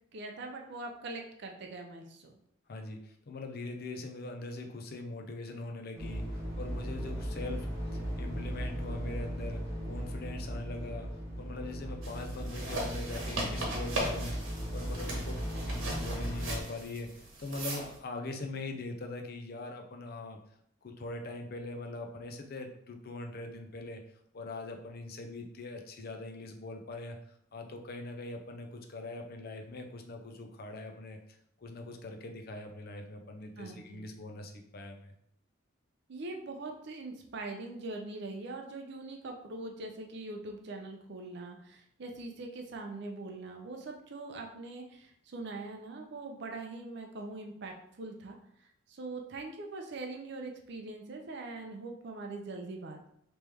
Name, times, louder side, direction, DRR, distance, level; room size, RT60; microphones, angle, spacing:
voice 1, 0.1-2.3 33.6-34.0 36.1-48.4 48.9-53.1, right 2 dB, 60° right, 2 dB, 0.5 m, -42 dB
voice 2, 2.7-20.4 20.8-24.0 24.3-35.1, left 2 dB, 50° left, 4 dB, 0.5 m, -42 dB
sound 1, 5.9-16.6, equal, 15° right, 0.8 m, -37 dB
sound 2, 12.0-18.0, right 1 dB, 85° right, 1.1 m, -38 dB
3.3 x 3.0 x 3.4 m, 0.71 s
head